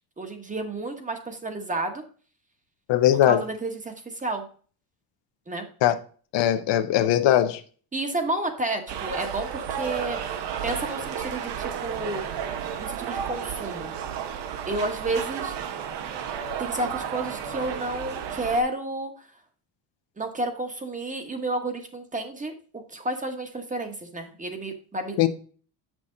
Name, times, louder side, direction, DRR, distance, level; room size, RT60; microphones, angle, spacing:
voice 1, 0.2-2.0 3.1-4.5 5.5-5.6 7.9-12.5 12.8-13.9 14.6-15.5 16.6-19.3 20.2-25.3, right 2 dB, 15° right, 1.1 m, -31 dB
voice 2, 2.9-3.4 5.8-6.0 6.3-7.6 25.2-25.3, left 12 dB, 70° left, 0.9 m, -20 dB
sound 1, 8.9-18.6, right 8 dB, 65° right, 1.0 m, -32 dB
7.3 x 6.2 x 3.8 m
cardioid pair, 150°, 45 cm